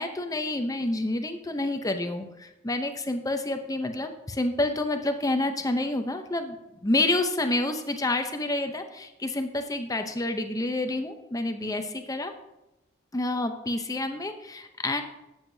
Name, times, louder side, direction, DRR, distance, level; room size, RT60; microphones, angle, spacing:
voice 1, 0.0-6.6 6.8-12.3 13.1-15.0, left 2 dB, 15° left, 7 dB, 0.7 m, -28 dB
12.5 x 8.0 x 2.7 m, 0.96 s
head